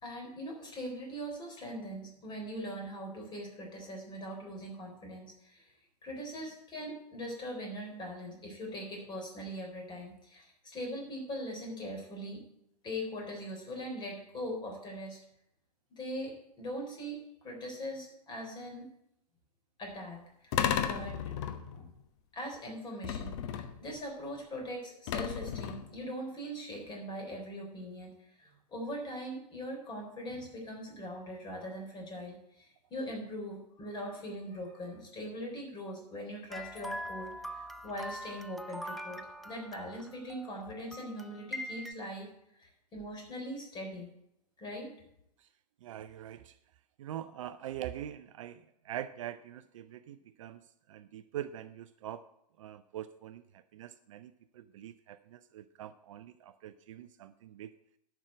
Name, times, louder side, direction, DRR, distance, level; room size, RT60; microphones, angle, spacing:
voice 1, 0.0-5.7 6.0-12.4 12.8-15.2 15.9-18.9 19.8-21.2 21.7-21.9 22.3-42.3 42.6-44.1 44.6-44.9, equal, 20° left, 1 dB, 3.8 m, -41 dB
sound 1, 20.5-21.9 23.0-23.9 25.1-26.0, left 9 dB, 45° left, 1.0 m, -34 dB
sound 2, 36.5-41.9, left 1 dB, ahead, 0.3 m, -43 dB
voice 2, 45.8-46.6 47.0-52.3 52.6-57.7, right 11 dB, 50° right, 13 dB, 0.5 m, -44 dB
11.0 x 6.0 x 7.7 m, 0.78 s
figure-of-eight pair, 105°, 21 cm